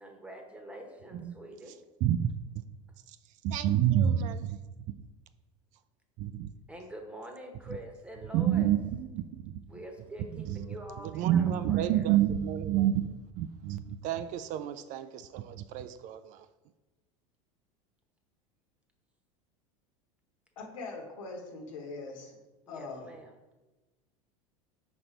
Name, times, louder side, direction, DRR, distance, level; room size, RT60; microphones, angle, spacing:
voice 1, 0.0-1.8 6.7-8.7 9.7-12.1 22.7-23.3, right 1 dB, 5° right, 1.1 m, -45 dB
voice 2, 2.0-2.3 3.4-4.6 6.2-6.5 8.3-9.6 10.5-10.6 11.1-16.5, right 11 dB, 50° right, 0.4 m, -28 dB
voice 3, 20.6-22.4 22.7-23.1, left 3 dB, 80° left, 1.2 m, -42 dB
5.2 x 4.2 x 4.4 m
hypercardioid pair, 90°, 17 cm